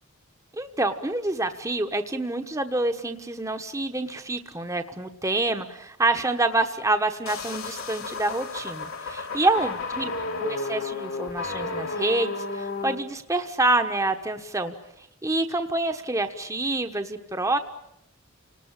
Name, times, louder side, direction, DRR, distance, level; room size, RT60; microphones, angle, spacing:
voice 1, 0.5-10.1 10.4-14.7 15.2-17.6, right 2 dB, 15° right, 6 dB, 1.2 m, -27 dB
sound 1, 7.3-13.0, left 3 dB, 85° left, 3.7 m, -32 dB
29.5 x 19.0 x 8.9 m, 0.79 s
head